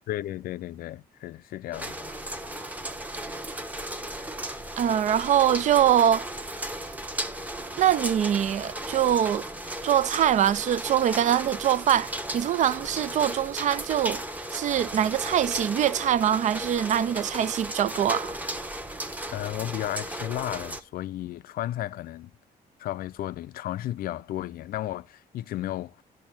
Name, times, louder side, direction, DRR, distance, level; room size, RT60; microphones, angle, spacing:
voice 1, 0.1-2.1 19.3-22.3 22.8-26.0, left 14 dB, 70° left, 0.4 m, -33 dB
sound 1, 1.7-20.8, right 1 dB, 10° right, 1.0 m, -35 dB
voice 2, 4.8-6.3 7.8-9.4 9.8-14.2 14.5-18.4, right 10 dB, 50° right, 0.4 m, -23 dB
10.5 x 6.7 x 4.2 m
cardioid pair, 135°, 16 cm